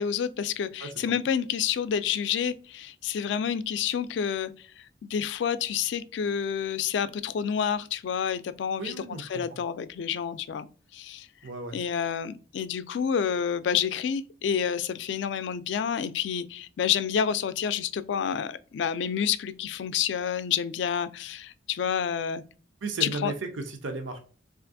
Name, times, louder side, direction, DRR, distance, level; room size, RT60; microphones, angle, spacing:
voice 1, 0.0-4.5 5.0-10.7 10.9-11.3 11.7-22.4 23.0-23.3, left 8 dB, 70° left, 0.3 m, -29 dB
voice 2, 8.8-9.6 11.4-11.8 22.8-24.2, right 3 dB, 90° right, 0.6 m, -35 dB
3.3 x 2.5 x 2.5 m
head